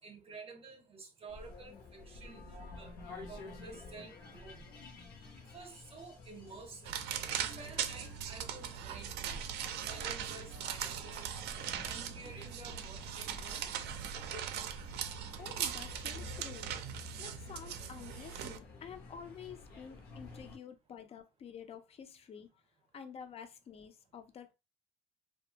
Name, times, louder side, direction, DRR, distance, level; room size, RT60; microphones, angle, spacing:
voice 1, 0.0-4.7 5.5-7.0 7.2-11.4 11.8-13.9, right 3 dB, 35° right, 0.6 m, -51 dB
sound 1, 1.3-20.6, left 3 dB, 65° left, 0.8 m, -51 dB
sound 2, 6.8-18.6, right 9 dB, 75° right, 0.4 m, -40 dB
voice 2, 15.1-16.7 17.2-22.6 22.9-24.5, left 7 dB, 35° left, 0.4 m, -50 dB
2.5 x 2.3 x 2.8 m
cardioid pair, 110°, 17 cm